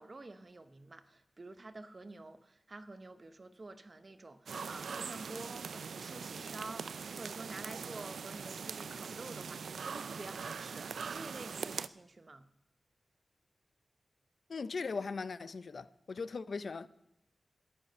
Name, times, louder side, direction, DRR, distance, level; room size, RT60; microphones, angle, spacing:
voice 1, 0.0-12.5, right 2 dB, 40° right, 0.9 m, -49 dB
sound 1, 4.5-11.9, right 6 dB, 90° right, 0.3 m, -42 dB
voice 2, 14.5-16.9, left 4 dB, 65° left, 0.5 m, -39 dB
13.0 x 9.9 x 5.3 m
wide cardioid pair, 75°, 0 cm